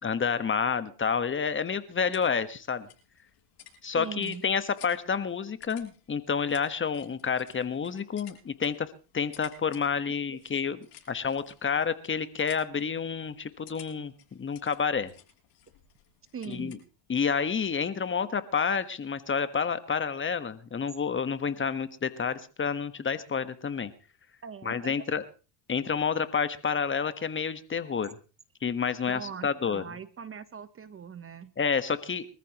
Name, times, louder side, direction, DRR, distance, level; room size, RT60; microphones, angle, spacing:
voice 1, 0.0-2.9 3.8-8.9 9.1-10.8 11.1-14.1 14.4-15.1 16.5-16.8 17.1-23.9 24.6-25.2 25.7-28.2 28.6-29.8 31.6-32.3, left 6 dB, 25° left, 12 dB, 1.4 m, -29 dB
sound 1, 1.8-17.4, left 11 dB, 50° left, 7.9 m, -56 dB
voice 2, 4.0-4.4 16.3-16.8 24.4-24.9 29.1-31.5, right 7 dB, 25° right, 14 dB, 1.0 m, -41 dB
24.5 x 14.0 x 3.1 m, 0.35 s
supercardioid pair, 110°, 50 cm